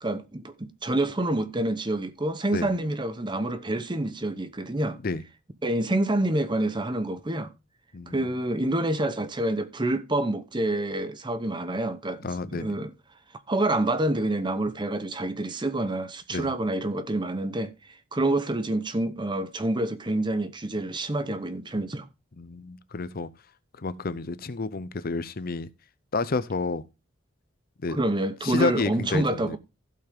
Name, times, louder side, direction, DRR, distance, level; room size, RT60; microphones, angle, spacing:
voice 1, 0.0-5.0 5.6-7.5 8.0-12.9 13.5-17.7 18.1-22.1 27.9-29.6, right 1 dB, 25° right, 0.8 m, -27 dB
voice 2, 7.9-8.2 12.2-12.7 16.3-16.5 22.4-23.3 23.8-25.7 26.1-26.8 27.8-28.0 28.4-29.6, left 3 dB, 45° left, 0.6 m, -30 dB
16.0 x 5.7 x 3.5 m
head